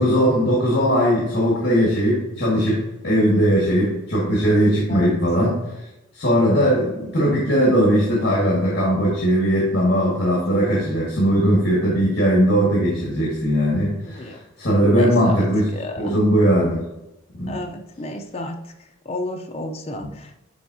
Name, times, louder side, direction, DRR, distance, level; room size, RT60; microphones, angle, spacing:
voice 1, 0.0-5.7 6.1-16.9 17.4-17.6 20.0-20.1, equal, 55° left, -5 dB, 1.7 m, -19 dB
voice 2, 4.9-5.2 14.0-14.4 14.8-15.4 15.7-16.2 17.5-18.6 19.1-20.4, left 1 dB, 30° left, 3 dB, 0.5 m, -32 dB
10.0 x 3.5 x 2.7 m, 0.91 s
head